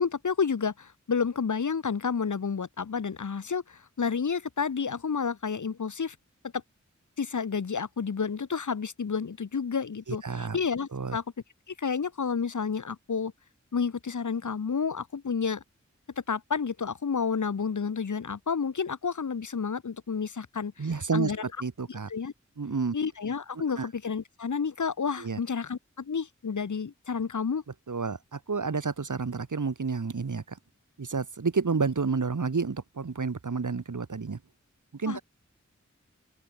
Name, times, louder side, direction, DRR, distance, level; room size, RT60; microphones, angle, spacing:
voice 1, 0.0-6.1 6.5-6.6 7.2-11.2 11.7-13.3 13.7-15.6 16.3-20.9 21.1-21.4 21.9-22.3 22.9-27.6 35.1-35.2, left 6 dB, 80° left, 1.1 m, -30 dB
voice 2, 10.1-10.6 10.9-11.2 20.8-21.3 21.6-22.1 22.6-22.9 23.7-23.9 25.2-25.4 27.9-30.6 31.0-34.4 34.9-35.2, right 4 dB, 90° right, 2.5 m, -30 dB
open air
wide cardioid pair, 65°, 30 cm